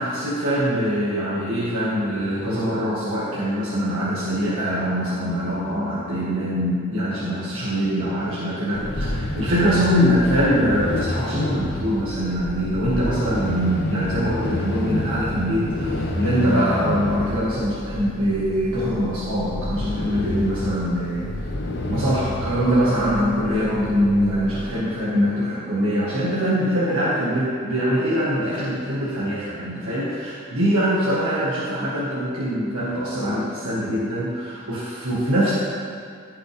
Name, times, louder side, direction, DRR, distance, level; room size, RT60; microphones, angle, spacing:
voice 1, 0.0-21.3 21.9-35.5, equal, 70° right, -9 dB, 1.7 m, -23 dB
sound 1, 8.7-24.7, left 1 dB, 50° left, 0.9 m, -29 dB
15.5 x 5.7 x 3.5 m, 2.2 s
head